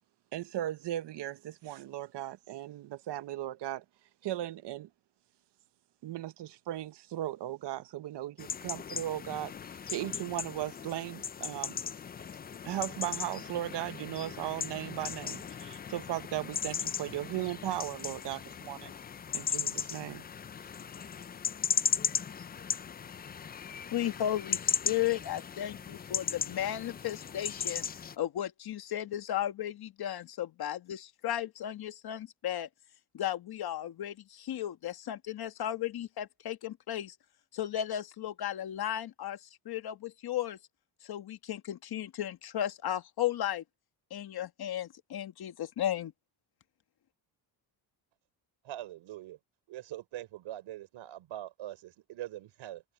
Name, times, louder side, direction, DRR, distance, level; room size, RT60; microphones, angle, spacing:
voice 1, 0.3-3.8 4.2-4.9 6.0-9.5 9.9-11.8 12.6-18.9 19.3-20.2, right 13 dB, 60° right, 0.9 m, -37 dB
sound 1, 8.4-28.2, left 7 dB, 25° left, 0.3 m, -37 dB
voice 2, 23.9-27.8 28.2-32.7 33.1-37.1 37.5-40.6 41.0-43.6 44.1-46.1, left 11 dB, 55° left, 1.5 m, -35 dB
voice 3, 48.6-49.4 49.7-52.8, right 13 dB, 85° right, 3.9 m, -43 dB
cardioid pair, 140°, 46 cm